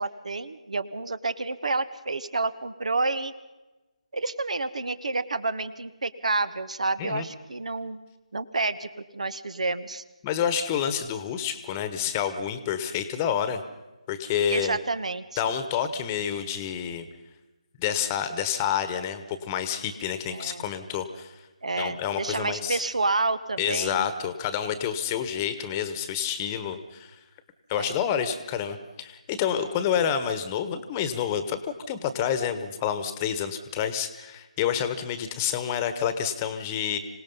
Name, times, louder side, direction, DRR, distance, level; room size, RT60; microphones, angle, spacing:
voice 1, 0.0-3.3 4.1-8.0 8.3-10.0 14.5-15.4 20.3-20.6 21.6-24.1 27.8-28.0, right 3 dB, 65° right, 15 dB, 1.2 m, -29 dB
voice 2, 10.2-13.6 14.1-14.8 15.4-17.1 17.8-21.4 21.8-22.8 23.6-27.2 27.7-37.0, left 8 dB, 20° left, 11 dB, 1.3 m, -28 dB
26.0 x 18.0 x 5.6 m, 1.1 s
figure-of-eight pair, 150°, 4 cm